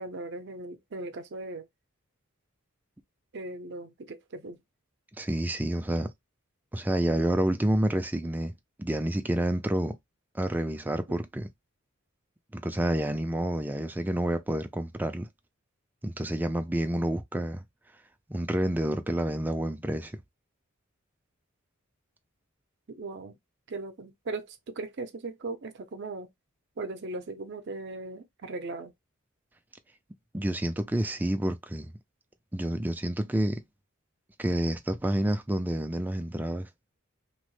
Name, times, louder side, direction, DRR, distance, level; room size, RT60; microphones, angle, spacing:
voice 1, 0.0-1.7 3.3-4.6 11.1-11.2 22.9-23.4 23.7-26.3 26.8-28.9, right 2 dB, 50° right, 0.6 m, -38 dB
voice 2, 5.2-6.1 6.7-8.5 8.8-10.0 10.3-11.5 12.5-15.3 16.0-17.6 18.3-20.2 30.3-31.9 32.5-33.6 34.4-36.7, right 1 dB, 10° right, 0.3 m, -29 dB
3.0 x 2.0 x 3.0 m
head